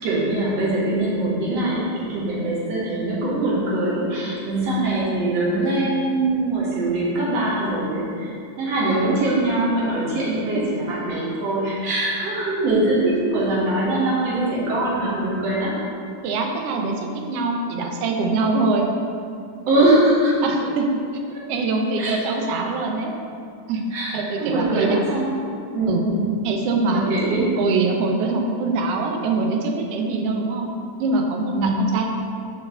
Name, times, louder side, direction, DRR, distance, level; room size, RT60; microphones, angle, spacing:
voice 1, 0.0-15.7 19.7-20.3 21.3-21.4 22.0-22.2 23.9-25.3 25.7-26.3 26.9-27.5 31.5-31.8, right 2 dB, 55° right, -6 dB, 2.7 m, -22 dB
voice 2, 16.2-18.9 20.4-20.9 21.5-23.1 23.7-23.9 24.1-25.0 25.9-26.0 26.4-27.2 27.6-30.7 31.0-32.0, right 3 dB, 85° right, 2 dB, 1.3 m, -23 dB
6.4 x 4.8 x 6.6 m, 2.4 s
omnidirectional pair, 3.7 m